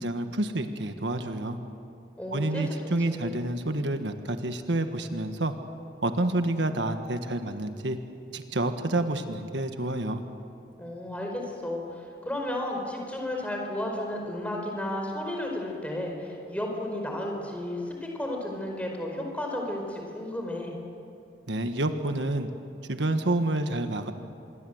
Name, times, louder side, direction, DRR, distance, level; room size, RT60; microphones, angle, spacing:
voice 1, 0.0-1.6 2.3-5.5 6.0-8.0 8.3-10.2 21.5-22.5 22.9-24.1, right 2 dB, 85° right, 7 dB, 1.5 m, -28 dB
voice 2, 2.2-2.6 3.2-3.3 10.8-20.7, left 1 dB, 10° left, 1 dB, 4.7 m, -33 dB
26.0 x 22.5 x 8.0 m, 2.5 s
head